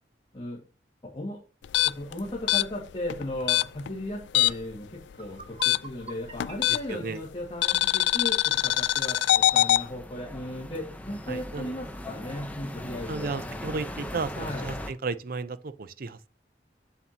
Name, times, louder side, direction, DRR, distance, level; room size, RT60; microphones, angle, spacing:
sound 1, 1.6-4.8 5.0-7.1 7.6-9.8, left 14 dB, 85° left, 0.3 m, -24 dB
voice 1, 1.8-13.6 14.4-14.7, left 1 dB, 30° left, 2.0 m, -36 dB
sound 2, 5.0-8.1, right 3 dB, 35° right, 1.5 m, -47 dB
sound 3, 9.1-14.9, left 1 dB, 10° left, 0.8 m, -39 dB
voice 2, 11.3-11.7 13.1-16.3, right 4 dB, 55° right, 0.6 m, -34 dB
8.0 x 7.6 x 2.9 m
head